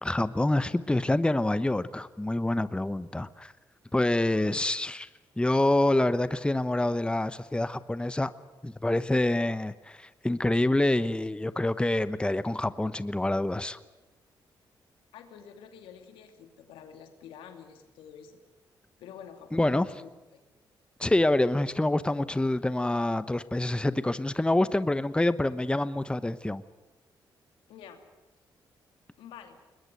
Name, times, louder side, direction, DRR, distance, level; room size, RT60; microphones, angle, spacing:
voice 1, 0.0-3.5 3.9-5.1 5.4-8.3 8.6-13.8 19.5-19.9 21.0-26.6, left 1 dB, 10° left, 14 dB, 1.0 m, -26 dB
voice 2, 15.1-18.4 19.0-20.4 27.7-28.0 29.2-29.6, left 8 dB, 90° left, 6 dB, 2.6 m, -48 dB
21.5 x 21.0 x 9.2 m, 1.1 s
supercardioid pair, 60°, 9 cm